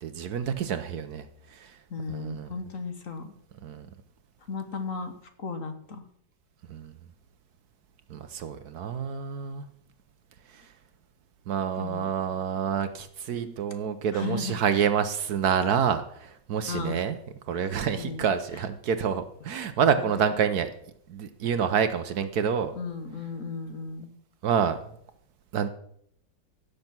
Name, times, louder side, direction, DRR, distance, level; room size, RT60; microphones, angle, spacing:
voice 1, 0.0-1.8 2.1-2.5 3.6-3.9 6.7-6.9 8.1-9.7 10.5-10.7 11.5-17.2 17.5-20.7 21.1-22.7 24.4-25.0 25.5-25.7, right 7 dB, 65° right, 10 dB, 1.2 m, -28 dB
voice 2, 1.9-3.3 4.5-6.0 11.8-12.1 13.4-13.5 14.1-14.6 16.7-17.0 18.0-18.3 19.9-20.1 22.7-24.1, left 4 dB, 50° left, 8 dB, 1.5 m, -35 dB
16.0 x 6.8 x 6.0 m, 0.69 s
omnidirectional pair, 2.0 m